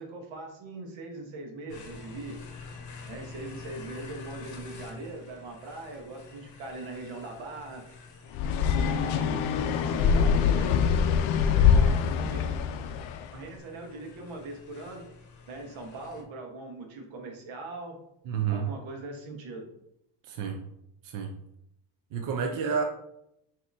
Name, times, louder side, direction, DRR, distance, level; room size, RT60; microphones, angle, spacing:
voice 1, 0.0-2.4 3.1-7.8 8.7-10.9 11.5-12.5 13.3-15.0 15.5-18.0 18.5-19.7, right 2 dB, 70° right, 2 dB, 1.2 m, -41 dB
sound 1, 1.7-16.2, left 4 dB, 40° left, 0.8 m, -48 dB
sound 2, 8.3-13.2, left 7 dB, 75° left, 0.5 m, -24 dB
voice 2, 18.3-18.7 20.3-20.6 21.0-21.3 22.1-22.8, right 6 dB, 45° right, 3 dB, 0.5 m, -30 dB
5.6 x 2.8 x 2.6 m, 0.78 s
cardioid pair, 130°, 47 cm